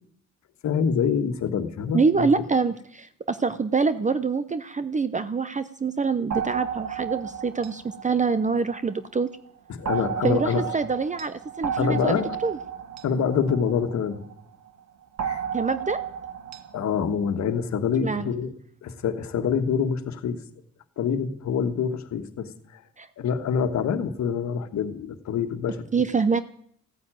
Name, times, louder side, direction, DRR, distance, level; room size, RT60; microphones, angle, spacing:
voice 1, 0.6-2.3 9.7-10.7 11.8-12.3 13.0-14.2 15.2-15.4 16.7-18.5 18.8-20.4 21.0-22.8 23.2-26.0, left 7 dB, 65° left, 8 dB, 1.7 m, -26 dB
voice 2, 1.9-9.3 10.2-12.6 15.5-16.0 18.0-18.3 23.0-23.1 25.9-26.4, right 4 dB, 25° right, 13 dB, 0.8 m, -25 dB
sound 1, 6.3-9.1 9.9-14.4 15.2-17.0, right 8 dB, 60° right, 1.6 m, -33 dB
15.0 x 9.7 x 9.1 m, 0.64 s
cardioid pair, 90°, 30 cm